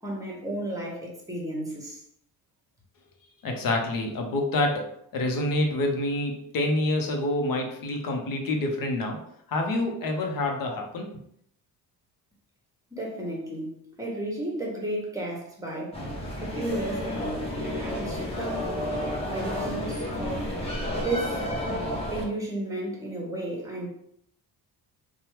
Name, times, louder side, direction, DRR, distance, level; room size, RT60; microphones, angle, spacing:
voice 1, 0.0-2.0 12.9-16.0 16.4-18.7 19.2-20.5 20.9-21.4 22.1-23.9, right 1 dB, 10° right, -2 dB, 1.1 m, -33 dB
voice 2, 3.4-9.2 9.5-11.1, left 2 dB, 60° left, 2 dB, 0.8 m, -27 dB
sound 1, 15.9-22.3, equal, 15° left, 1.0 m, -31 dB
2.8 x 2.3 x 3.2 m, 0.70 s
cardioid pair, 95°, 38 cm